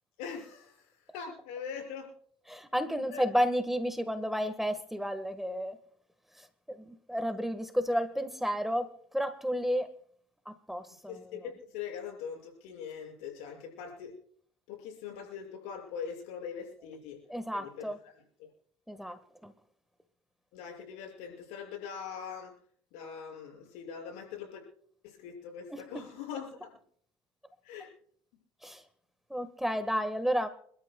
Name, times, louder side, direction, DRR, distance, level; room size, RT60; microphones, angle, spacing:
voice 1, 0.2-0.8 1.1-2.1 3.1-3.2 11.1-14.1 14.7-17.2 17.5-17.9 18.4-18.5 20.5-22.5 22.9-24.6 25.0-26.7 27.6-27.9, left 7 dB, 80° left, 2 dB, 6.5 m, -42 dB
voice 2, 2.5-5.8 6.4-9.9 10.4-11.5 17.3-18.0 18.9-19.5 25.7-26.1 28.6-28.8 29.3-30.5, equal, ahead, 10 dB, 1.5 m, -32 dB
28.5 x 12.5 x 2.3 m, 0.62 s
supercardioid pair, 75°, 12 cm